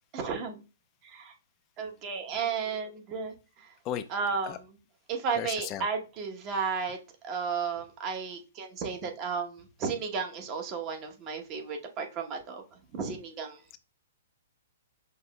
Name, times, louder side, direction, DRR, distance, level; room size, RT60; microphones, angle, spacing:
voice 1, 0.1-0.6 1.0-1.3 1.8-3.7 4.1-4.8 5.1-7.0 7.2-12.6 12.9-13.6, right 5 dB, 30° right, 0.9 m, -33 dB
voice 2, 5.4-5.8, left 10 dB, 30° left, 0.3 m, -34 dB
5.8 x 2.8 x 2.2 m
hypercardioid pair, 130°, 0 cm